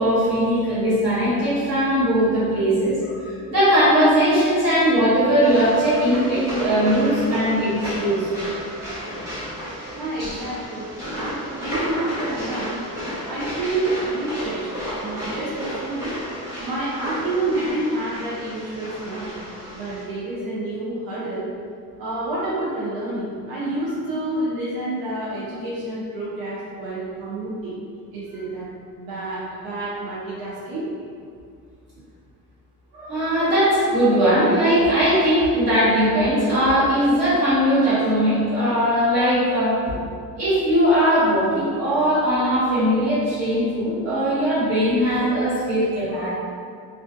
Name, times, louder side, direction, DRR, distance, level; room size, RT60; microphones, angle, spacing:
voice 1, 0.0-8.6 32.9-39.8 40.4-46.3, equal, 40° right, -11 dB, 1.4 m, -19 dB
sound 1, 5.4-20.0, equal, 10° right, 0.9 m, -33 dB
voice 2, 9.9-12.8 13.3-14.7 15.0-16.1 16.6-19.3 19.7-21.5 22.0-27.8 28.1-28.7 29.0-30.8, right 2 dB, 80° right, -8 dB, 0.6 m, -28 dB
2.3 x 2.3 x 2.5 m, 2.2 s
cardioid pair, 140°, 37 cm